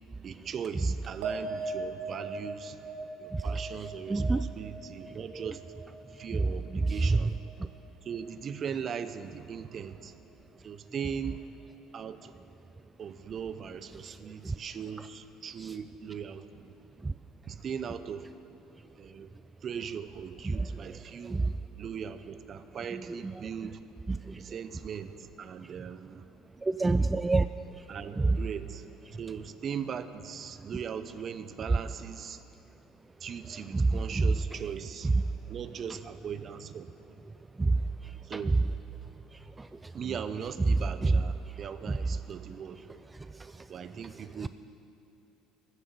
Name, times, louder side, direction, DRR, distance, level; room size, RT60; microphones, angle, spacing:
voice 1, 0.2-2.8 3.2-5.6 6.2-7.3 8.0-10.2 10.6-11.4 11.9-12.3 13.0-16.7 17.5-18.3 19.0-19.3 19.6-21.4 21.8-23.8 24.4-25.1 25.4-26.2 27.9-28.9 29.2-32.4 33.2-35.1 35.5-36.9 38.3-38.6 39.9-42.8 43.6-44.5, right 7 dB, 45° right, 13 dB, 0.6 m, -39 dB
sound 1, 1.2-7.9 8.2-8.8, right 3 dB, 70° right, 1.6 m, -41 dB
voice 2, 4.1-4.4 7.1-7.2 21.3-21.4 26.6-27.5 28.2-28.4 33.7-33.9 37.6-37.7 41.0-41.1, right 3 dB, 20° right, 13 dB, 0.3 m, -25 dB
14.0 x 7.4 x 7.0 m, 2.9 s
hypercardioid pair, 65°, 0 cm